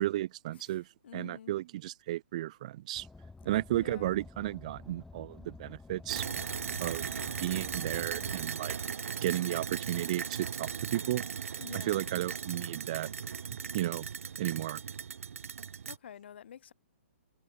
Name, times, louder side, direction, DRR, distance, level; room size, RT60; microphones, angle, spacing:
voice 1, 0.0-3.1 3.5-6.2 6.8-7.1 7.4-8.8 9.2-11.2 11.7-13.1 13.7-14.0 14.4-14.8, right 15 dB, 30° right, 0.6 m, -33 dB
voice 2, 0.6-1.5 3.7-4.2 11.6-12.1 15.9-16.7, left 9 dB, 50° left, 3.1 m, -48 dB
Car, 2.9-8.4, left 3 dB, 5° left, 2.3 m, -50 dB
sound 1, 6.1-16.0, right 7 dB, 85° right, 0.7 m, -38 dB
hypercardioid pair, 170°, 7 cm